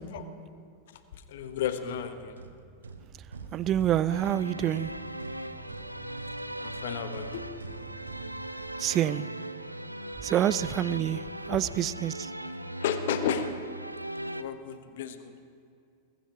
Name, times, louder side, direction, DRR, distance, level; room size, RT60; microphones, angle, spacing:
voice 1, 1.1-2.4 6.6-7.5 11.5-11.6 12.8-13.5 14.2-15.3, left 9 dB, 55° left, 9 dB, 1.0 m, -33 dB
sound 1, 1.4-9.4, right 4 dB, 70° right, 0.9 m, -47 dB
voice 2, 3.5-4.9 8.8-9.3 10.2-11.2 11.5-12.3, right 11 dB, 30° right, 18 dB, 0.4 m, -27 dB
sound 2, 4.1-14.4, right 1 dB, 85° right, 0.5 m, -39 dB
21.0 x 15.0 x 2.9 m, 2.4 s
figure-of-eight pair, 90°, 0 cm